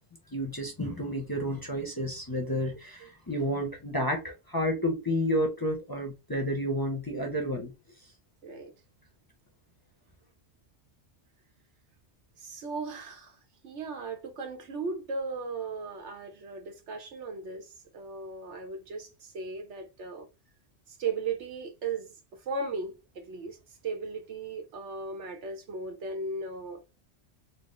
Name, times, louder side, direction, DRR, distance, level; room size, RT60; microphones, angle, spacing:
voice 1, 0.3-7.7, equal, 25° left, 0.6 m, -30 dB
voice 2, 8.4-8.7 12.4-20.3 20.9-23.6 23.8-26.8, right 4 dB, 85° right, 1.3 m, -37 dB
4.1 x 2.1 x 3.1 m
omnidirectional pair, 1.2 m